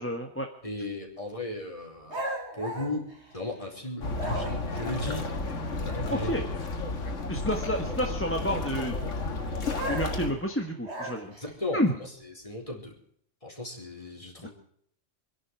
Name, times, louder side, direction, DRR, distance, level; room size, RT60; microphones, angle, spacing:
voice 1, 0.0-0.5 6.1-6.5 7.3-8.9 9.9-11.3 11.7-11.9 14.4-14.5, equal, 10° left, 2 dB, 1.5 m, -29 dB
voice 2, 0.6-2.2 2.6-3.1 3.3-5.3 5.8-6.4 11.3-12.1 12.4-12.9 13.4-14.5, left 1 dB, 25° left, 0 dB, 4.4 m, -36 dB
sound 1, 2.1-3.7 4.1-4.8 9.7-11.5, right 1 dB, 65° right, 4.7 m, -36 dB
sound 2, 4.0-10.3, left 3 dB, 90° left, 2.2 m, -32 dB
26.5 x 11.0 x 4.7 m, 0.63 s
omnidirectional pair, 1.2 m